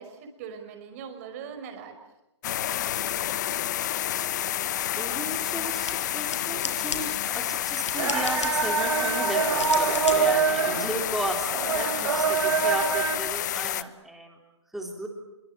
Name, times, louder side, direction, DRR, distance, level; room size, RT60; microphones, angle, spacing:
voice 1, 0.0-2.0 10.3-10.4 11.6-12.3, right 7 dB, 30° right, 6 dB, 5.3 m, -42 dB
sound 1, 2.4-13.8, left 12 dB, 40° left, 1.0 m, -29 dB
voice 2, 5.0-14.4 14.7-15.1, right 1 dB, ahead, 2 dB, 3.6 m, -35 dB
sound 2, 5.7-11.8, left 5 dB, 75° left, 6.0 m, -39 dB
sound 3, 8.0-13.2, right 6 dB, 70° right, 4.4 m, -25 dB
26.5 x 23.5 x 8.9 m, 0.92 s
hypercardioid pair, 160°, 15 cm